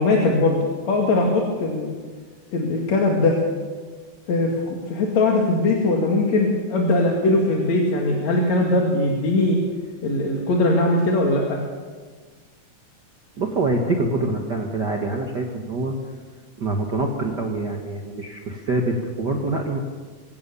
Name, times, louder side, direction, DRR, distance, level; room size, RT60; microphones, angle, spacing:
voice 1, 0.0-2.0 2.5-3.4 4.3-9.6 10.0-11.6, left 2 dB, 60° left, 0 dB, 3.3 m, -20 dB
voice 2, 13.4-15.9 16.6-19.8, right 2 dB, 40° right, 2 dB, 1.8 m, -25 dB
24.5 x 17.0 x 7.0 m, 1.5 s
omnidirectional pair, 3.6 m